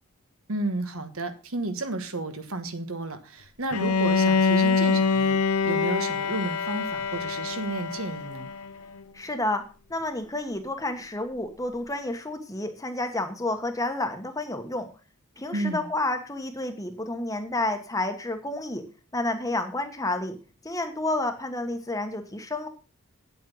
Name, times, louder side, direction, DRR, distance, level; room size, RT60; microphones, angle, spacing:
voice 1, 0.5-5.4 5.6-8.5 15.5-15.9, right 2 dB, 65° right, 8 dB, 1.4 m, -32 dB
Bowed string instrument, 3.7-8.7, left 5 dB, 80° left, 0.8 m, -25 dB
voice 2, 9.1-9.6 9.9-14.9 15.4-18.8 19.1-20.4 20.6-22.7, left 2 dB, 15° left, 6 dB, 1.3 m, -30 dB
9.3 x 7.8 x 5.5 m, 0.34 s
head